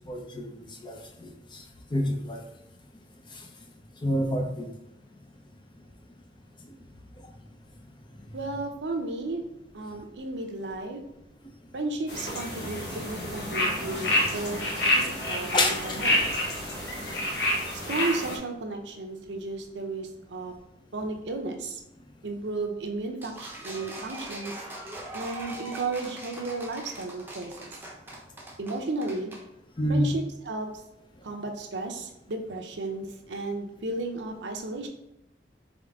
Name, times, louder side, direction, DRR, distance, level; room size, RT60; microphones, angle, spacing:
voice 1, 0.1-0.5 0.8-1.3 1.9-2.4 4.0-4.7 15.5-15.7 29.8-30.1, left 1 dB, 25° left, 3 dB, 0.6 m, -27 dB
voice 2, 8.3-9.4 9.7-11.0 11.7-14.6 15.0-16.2 17.7-20.5 20.9-21.8 22.2-24.5 25.1-27.7 28.6-29.3 29.9-30.7 31.2-34.9, right 2 dB, 85° right, 3 dB, 0.7 m, -33 dB
sound 1, 12.1-18.4, left 1 dB, 70° left, 1.0 m, -28 dB
sound 2, 23.2-29.4, right 2 dB, 10° right, 0.7 m, -41 dB
3.6 x 3.6 x 3.5 m, 0.86 s
head